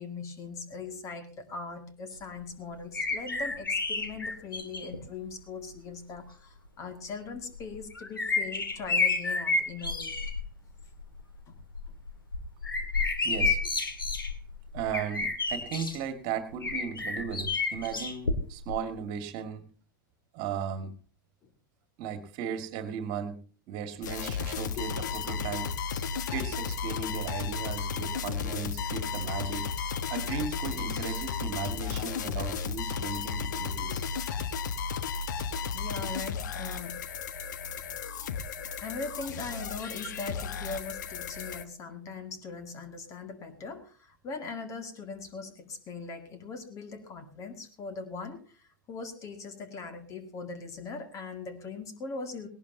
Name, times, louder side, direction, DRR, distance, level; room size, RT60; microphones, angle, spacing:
voice 1, 0.0-10.2 11.5-11.6 21.4-21.5 24.8-24.9 28.3-28.4 35.7-37.0 38.8-52.5, left 4 dB, 25° left, 8 dB, 2.1 m, -40 dB
sound 1, 2.9-5.0 5.9-6.0 7.5-10.4 10.8-11.2 11.6-16.0 16.6-18.8 19.0-19.1, left 3 dB, 80° left, 2.0 m, -30 dB
voice 2, 13.2-13.6 14.7-19.7 20.3-20.9 22.0-25.7 26.3-29.7 30.1-34.0 39.2-39.3, right 7 dB, 40° right, 10 dB, 1.9 m, -36 dB
sound 2, 24.0-41.6, left 6 dB, 55° left, 1.0 m, -34 dB
18.5 x 18.0 x 2.8 m, 0.38 s
figure-of-eight pair, 100°, 11 cm